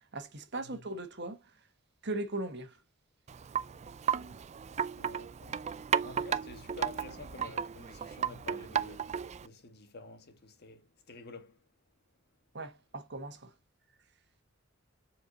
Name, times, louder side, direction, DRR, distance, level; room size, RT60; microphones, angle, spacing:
voice 1, 0.1-1.4 2.0-2.8 12.5-13.5, right 2 dB, 60° right, 1.4 m, -38 dB
Wind chime, 3.3-9.5, right 8 dB, 35° right, 0.4 m, -34 dB
voice 2, 3.7-4.4 5.0-9.2 9.4-11.6, left 3 dB, 55° left, 1.6 m, -50 dB
7.5 x 4.7 x 2.8 m
head